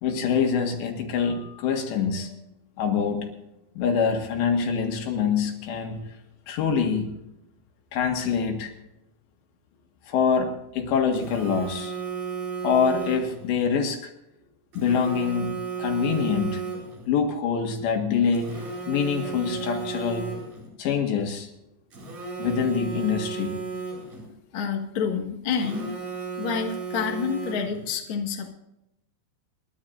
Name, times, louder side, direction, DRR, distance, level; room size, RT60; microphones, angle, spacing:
voice 1, 0.0-2.3 2.8-3.3 3.8-6.0 6.5-7.1 7.9-8.7 10.1-11.9 12.6-14.1 14.8-15.5 15.8-16.6 17.1-20.3 20.8-21.5 22.4-23.6, left 6 dB, 75° left, 3 dB, 3.9 m, -25 dB
Telephone, 11.1-13.5 14.7-17.1 18.3-20.7 21.9-24.3 25.5-27.9, right 5 dB, 50° right, 5.8 m, -34 dB
voice 2, 24.5-25.9 26.4-28.5, left 6 dB, 55° left, 2 dB, 1.4 m, -28 dB
29.0 x 11.5 x 2.6 m, 0.87 s
omnidirectional pair, 5.1 m